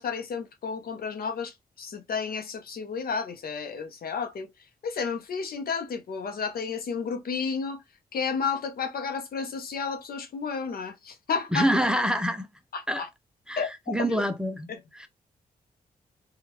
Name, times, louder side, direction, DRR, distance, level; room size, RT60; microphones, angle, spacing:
voice 1, 0.0-4.5 4.8-7.8 8.1-11.7 12.7-13.1 13.6-13.7 14.1-14.2 14.7-14.8, left 5 dB, 65° left, 0.8 m, -32 dB
voice 2, 11.5-12.5 12.9-13.0 13.5-13.6 13.9-14.7 15.0-15.1, equal, 5° right, 0.6 m, -25 dB
3.0 x 2.4 x 3.0 m
supercardioid pair, 50°, 16 cm